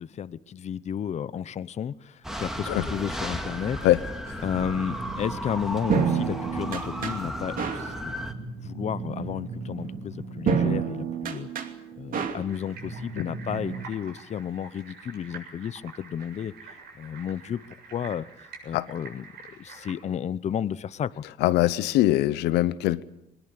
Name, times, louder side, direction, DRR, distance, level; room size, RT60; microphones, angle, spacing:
voice 1, 0.0-3.8 4.4-8.3 8.5-11.5 12.0-16.5 16.9-17.6 17.9-18.3 18.6-21.2, left 9 dB, 40° left, 0.8 m, -32 dB
sound 1, 2.2-8.3, equal, ahead, 2.4 m, -34 dB
sound 2, 4.5-13.8, right 6 dB, 55° right, 2.8 m, -31 dB
sound 3, 12.5-19.9, right 4 dB, 75° right, 7.4 m, -47 dB
voice 2, 21.4-23.0, left 15 dB, 90° left, 0.8 m, -22 dB
22.0 x 20.0 x 8.4 m
cardioid pair, 110°, 17 cm